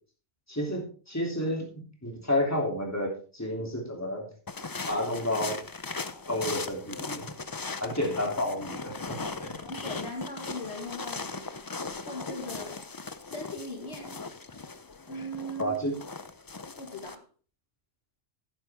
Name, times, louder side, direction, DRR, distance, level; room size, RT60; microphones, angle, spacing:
voice 1, 0.5-1.7 2.0-4.3 4.8-5.6 6.3-7.3 7.8-9.6 15.6-15.9, left 1 dB, 15° left, 0 dB, 3.0 m, -30 dB
sound 1, 4.5-17.1, left 4 dB, 30° left, 0.4 m, -38 dB
voice 2, 9.6-11.3 12.0-12.8 13.2-14.2 15.1-15.8 16.8-17.2, equal, 65° left, 2 dB, 2.1 m, -39 dB
12.0 x 9.3 x 3.5 m, 0.38 s
omnidirectional pair, 1.2 m